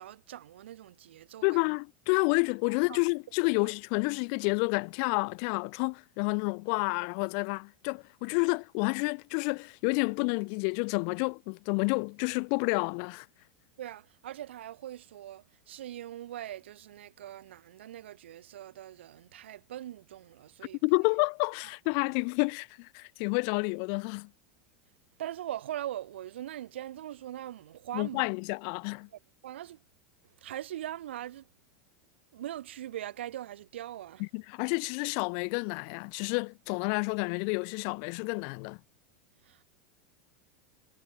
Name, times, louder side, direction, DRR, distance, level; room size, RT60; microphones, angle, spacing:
voice 1, 0.0-1.7 2.7-3.0 3.5-3.7 13.8-20.8 21.9-22.2 25.2-28.3 29.1-29.8 30.2-31.5 32.3-34.2 39.4-39.7, right 12 dB, 90° right, 1.0 m, -41 dB
voice 2, 1.4-13.3 20.8-24.3 27.9-29.1 34.3-38.8, left 40 dB or more, 60° left, 0.4 m, -29 dB
supercardioid pair, 115°, 6 cm